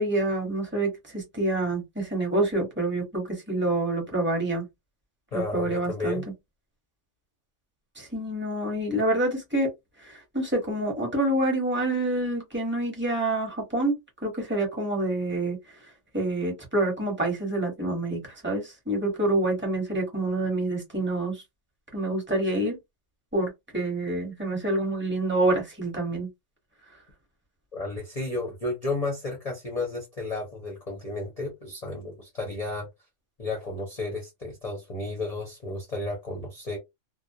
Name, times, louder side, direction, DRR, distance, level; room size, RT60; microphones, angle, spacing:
voice 1, 0.0-4.7 5.3-6.2 8.0-9.7 10.1-13.9 14.2-15.6 16.1-21.4 21.9-22.8 23.3-26.3, right 2 dB, 10° right, 0.9 m, -27 dB
voice 2, 5.3-6.2 27.7-32.9 33.4-36.8, left 2 dB, 40° left, 0.7 m, -32 dB
2.3 x 2.0 x 2.7 m
omnidirectional pair, 1.3 m